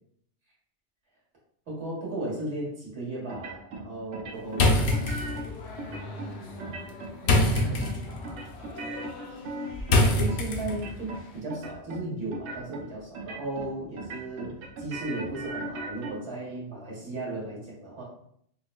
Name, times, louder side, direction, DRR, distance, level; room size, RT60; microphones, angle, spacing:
voice 1, 1.7-5.4 9.9-18.0, right 2 dB, 70° right, -6 dB, 1.6 m, -36 dB
sound 1, 3.3-3.9 4.1-5.5 5.8-6.3 6.6-7.1 7.4-8.0 8.2-10.4 10.7-11.2 11.5-12.0 12.3-12.8 13.2-13.7 14.0-16.1, right 2 dB, 90° right, 0.9 m, -38 dB
sound 2, 4.5-11.0, left 2 dB, 70° left, 0.8 m, -27 dB
voice 2, 5.8-6.8 7.2-8.4, right 2 dB, 50° right, -5 dB, 1.0 m, -38 dB
5.5 x 2.0 x 2.2 m, 0.68 s
omnidirectional pair, 1.2 m